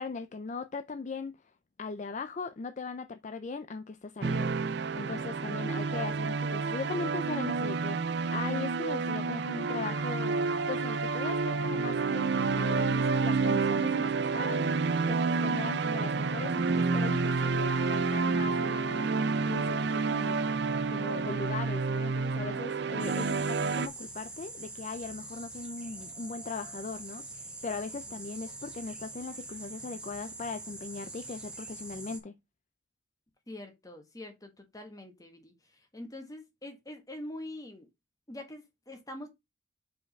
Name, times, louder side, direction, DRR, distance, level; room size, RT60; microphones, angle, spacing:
voice 1, 0.0-1.3 1.8-4.5 4.9-20.4 20.9-32.4, left 4 dB, 40° left, 0.4 m, -39 dB
sound 1, 4.2-23.9, right 4 dB, 60° right, 0.5 m, -29 dB
sound 2, 23.0-32.2, right 2 dB, 5° right, 1.3 m, -44 dB
voice 2, 33.5-35.5 35.9-37.9 38.3-39.3, left 1 dB, 20° left, 1.4 m, -44 dB
5.1 x 4.9 x 5.3 m
head